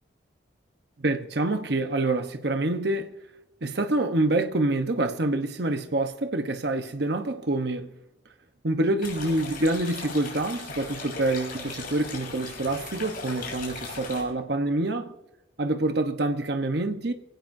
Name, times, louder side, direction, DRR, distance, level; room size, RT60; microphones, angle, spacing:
voice 1, 1.0-3.1 3.6-7.9 8.6-15.1 15.6-17.1, right 2 dB, 60° right, 0.9 m, -26 dB
sound 1, 9.0-14.2, left 4 dB, 50° left, 6.0 m, -38 dB
24.5 x 17.0 x 2.7 m
head